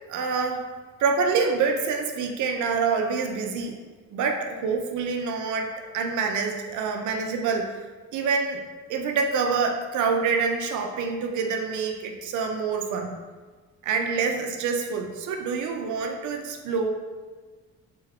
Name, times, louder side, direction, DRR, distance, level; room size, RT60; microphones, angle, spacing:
voice 1, 0.1-0.6 1.0-3.8 4.1-7.8 8.1-8.6 8.9-13.2 13.8-16.9, right 5 dB, 75° right, 3 dB, 0.6 m, -26 dB
3.7 x 3.5 x 3.5 m, 1.4 s
cardioid pair, 90°, 30 cm